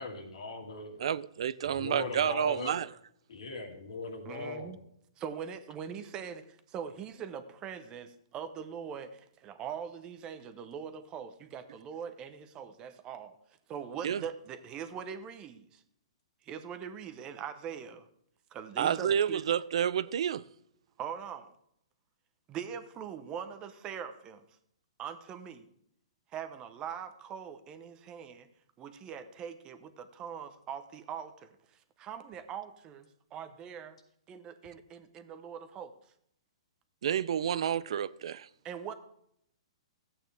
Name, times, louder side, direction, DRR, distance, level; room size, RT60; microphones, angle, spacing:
voice 1, 0.0-1.1 1.6-2.8 3.3-4.8, left 3 dB, 75° left, 2.4 m, -39 dB
voice 2, 1.0-2.9 14.0-14.2 18.8-20.4 37.0-38.5, right 9 dB, 65° right, 0.4 m, -29 dB
voice 3, 4.2-4.8 5.2-13.4 13.7-15.8 16.4-18.1 18.5-19.4 21.0-21.5 22.5-24.4 25.0-25.7 26.3-28.5 28.8-34.0 34.3-35.9 38.6-38.9, right 8 dB, 25° right, 0.8 m, -42 dB
14.0 x 8.7 x 3.4 m
hypercardioid pair, 135°, 3 cm